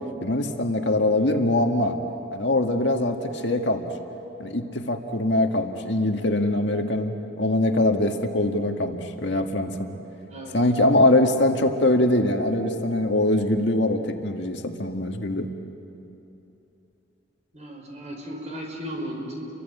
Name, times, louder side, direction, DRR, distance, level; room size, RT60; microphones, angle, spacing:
voice 1, 0.2-2.0 2.3-3.9 4.4-10.0 10.5-15.5, left 1 dB, 65° left, 4 dB, 1.8 m, -23 dB
voice 2, 10.3-10.6 17.5-19.5, equal, 35° right, 1 dB, 5.4 m, -35 dB
29.5 x 24.0 x 8.5 m, 2.9 s
head